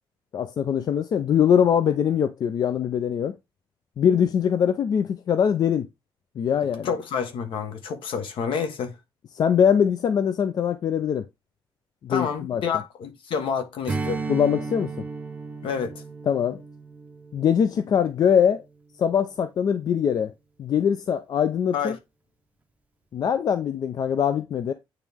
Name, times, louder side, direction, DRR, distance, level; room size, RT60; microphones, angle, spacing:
voice 1, 0.3-3.3 4.0-5.9 6.4-6.9 9.3-11.3 12.0-12.6 14.3-14.9 16.3-16.6 17.3-18.6 19.0-20.3 20.6-21.9 23.1-24.7, left 8 dB, 45° left, 0.4 m, -22 dB
voice 2, 6.8-9.0 12.1-14.2 15.6-16.0 21.7-21.9, left 6 dB, 65° left, 1.2 m, -29 dB
Strum, 13.9-18.6, right 4 dB, 15° right, 0.6 m, -35 dB
8.8 x 3.1 x 3.4 m
cardioid pair, 155°, 9 cm